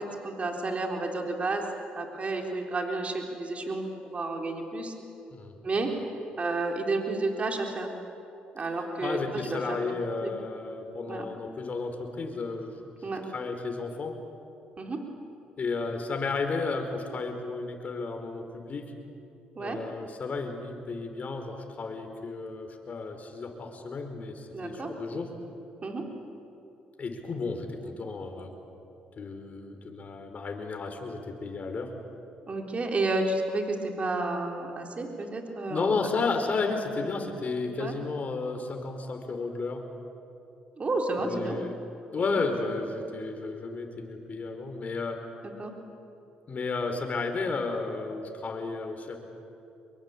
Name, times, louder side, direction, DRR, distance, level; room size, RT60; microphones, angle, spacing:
voice 1, 0.0-1.6 2.0-4.9 5.6-5.9 6.4-7.9 8.5-9.8 10.2-10.3 11.1-11.3 13.0-13.2 14.8-15.0 19.6-19.8 24.5-24.9 25.8-26.0 32.5-36.1 37.8-37.9 40.8-41.6 42.2-42.4 45.6-45.7, right 2 dB, 40° right, 2 dB, 4.0 m, -31 dB
voice 2, 9.0-14.2 15.6-18.9 19.6-25.3 27.0-28.5 29.2-31.9 35.7-39.8 41.2-41.7 42.1-45.2 46.5-49.2, left 4 dB, 45° left, 5 dB, 4.5 m, -33 dB
25.5 x 23.0 x 8.6 m, 2.8 s
supercardioid pair, 65°, 4 cm